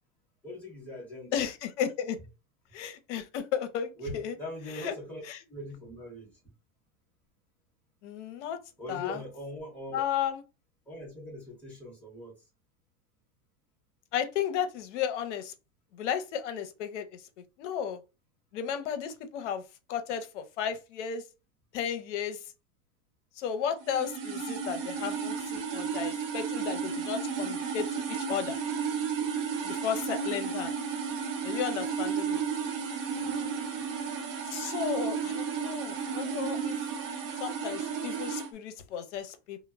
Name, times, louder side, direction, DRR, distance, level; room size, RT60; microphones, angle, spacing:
voice 1, 0.4-1.4 4.0-5.2 5.5-6.5 8.8-10.1 10.9-12.5 33.1-33.8, left 1 dB, 5° left, 0.5 m, -42 dB
voice 2, 1.3-2.2 2.7-4.3 4.7-4.9 5.3-5.4 8.0-8.6 8.9-9.2 9.9-10.4 14.1-15.5 15.9-17.2 17.6-18.0 18.5-19.6 19.9-21.2 21.7-22.4 23.4-28.6 29.6-30.7 31.4-32.4 34.5-36.8 37.4-39.6, left 8 dB, 75° left, 0.6 m, -34 dB
sound 1, 23.8-38.5, right 6 dB, 50° right, 0.7 m, -33 dB
2.1 x 2.0 x 3.4 m
supercardioid pair, 180°, 36 cm